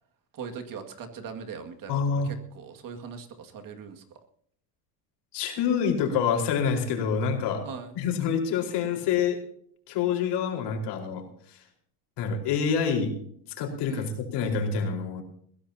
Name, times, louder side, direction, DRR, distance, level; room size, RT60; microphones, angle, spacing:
voice 1, 0.3-4.0 7.6-7.9 13.9-14.1, right 6 dB, 45° right, 5 dB, 2.2 m, -40 dB
voice 2, 1.9-2.3 5.3-7.6 7.9-9.4 9.9-11.6 12.2-13.1 13.6-15.2, left 6 dB, 60° left, 3 dB, 4.7 m, -27 dB
21.0 x 16.0 x 2.9 m, 0.62 s
supercardioid pair, 110°, 46 cm